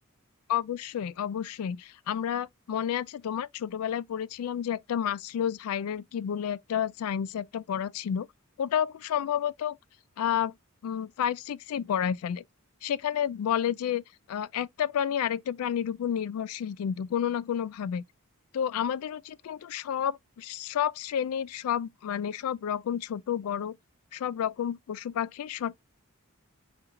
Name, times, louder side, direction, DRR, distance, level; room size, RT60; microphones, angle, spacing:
voice 1, 0.5-8.3 8.6-9.8 10.2-10.5 10.8-12.4 12.8-14.0 14.3-18.0 18.5-23.7 24.1-25.7, left 9 dB, 70° left, 0.3 m, -30 dB
4.3 x 2.6 x 3.7 m
head